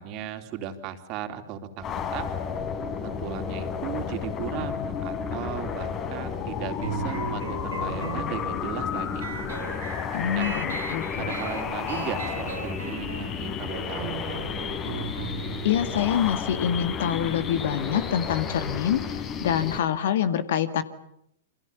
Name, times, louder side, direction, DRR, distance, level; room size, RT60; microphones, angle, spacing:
voice 1, 0.0-1.9 2.1-2.3 3.0-9.2 10.3-10.5 11.2-14.2, right 8 dB, 40° right, 7 dB, 3.5 m, -36 dB
sound 1, 1.8-19.8, left 6 dB, 30° left, 3.6 m, -32 dB
A Major Scale, 6.8-17.9, right 7 dB, 70° right, 2.5 m, -38 dB
voice 2, 10.1-11.3 15.6-20.8, left 9 dB, 60° left, 12 dB, 2.0 m, -26 dB
29.0 x 25.5 x 7.1 m, 0.75 s
figure-of-eight pair, 105°, 0 cm